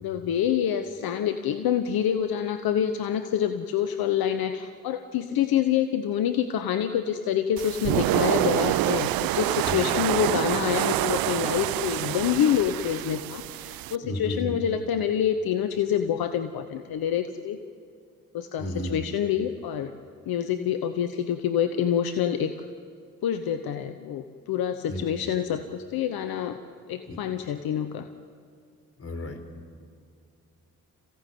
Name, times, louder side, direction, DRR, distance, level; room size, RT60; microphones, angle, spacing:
voice 1, 0.0-17.6 18.3-19.9 20.3-22.5 23.2-26.6 26.9-28.1, left 9 dB, 70° left, 8 dB, 1.1 m, -27 dB
sound 1, 7.6-14.0, right 17 dB, 65° right, 0.5 m, -27 dB
voice 2, 14.0-14.5 18.6-19.0 24.9-25.0 27.0-27.2 29.0-29.4, left 1 dB, 40° left, 5 dB, 4.2 m, -33 dB
27.5 x 16.5 x 9.3 m, 2.3 s
hypercardioid pair, 40°, 37 cm